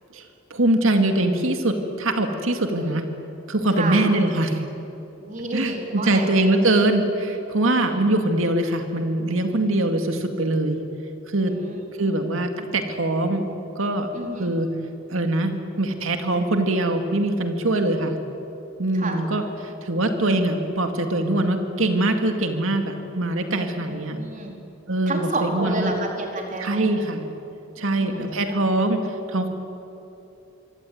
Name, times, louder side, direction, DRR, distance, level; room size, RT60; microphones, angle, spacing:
voice 1, 0.1-3.1 3.5-4.6 5.5-10.8 11.3-11.5 12.0-13.4 13.8-14.1 14.4-14.7 15.1-18.2 18.8-24.2 24.9-25.9 26.6-27.2 27.8-29.5, right 2 dB, 70° right, 5 dB, 2.2 m, -23 dB
voice 2, 5.2-6.3 7.7-8.0 11.5-12.2 14.1-14.5 17.9-18.1 18.9-19.2 23.8-24.5 25.1-26.9 27.8-28.6, right 2 dB, 35° right, 1 dB, 4.2 m, -31 dB
25.5 x 25.0 x 9.4 m, 3.0 s
head